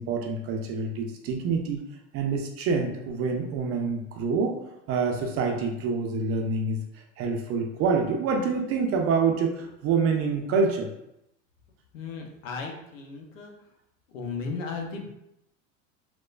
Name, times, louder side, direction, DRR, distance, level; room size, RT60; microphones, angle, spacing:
voice 1, 0.0-1.8 2.1-10.9, right 4 dB, 40° right, 2 dB, 0.4 m, -27 dB
voice 2, 11.9-13.5 14.1-15.1, left 4 dB, 90° left, 1 dB, 0.6 m, -35 dB
2.9 x 2.1 x 2.3 m, 0.81 s
hypercardioid pair, 100°, 37 cm